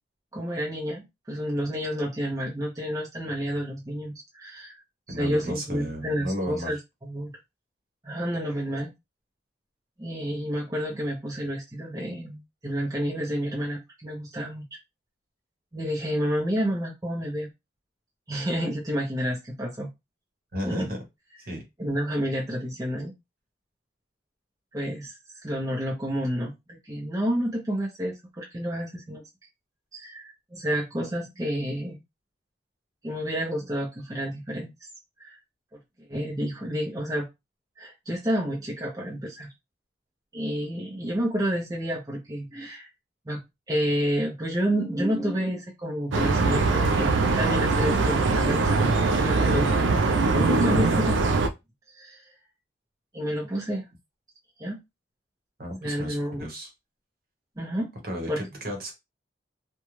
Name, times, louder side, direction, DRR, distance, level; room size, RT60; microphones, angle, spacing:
voice 1, 0.3-4.8 5.2-7.4 8.0-8.9 10.0-14.7 15.7-17.5 18.3-19.9 20.6-20.9 21.8-23.1 24.7-25.2 25.4-29.2 29.9-32.0 33.0-34.7 35.2-35.4 36.1-37.3 37.8-39.5 40.3-42.9 43.3-43.4 43.7-51.2 51.9-52.2 53.1-53.9 54.6-54.8 55.8-56.4 57.6-57.9 58.3-58.4, equal, 20° right, -3 dB, 0.7 m, -30 dB
voice 2, 5.1-6.8 20.5-21.0 21.5-21.6 55.6-56.7 58.0-58.9, equal, 50° right, 2 dB, 1.0 m, -33 dB
sound 1, 46.1-51.5, right 3 dB, 80° right, 0.4 m, -22 dB
2.5 x 2.2 x 3.0 m, 0.21 s
head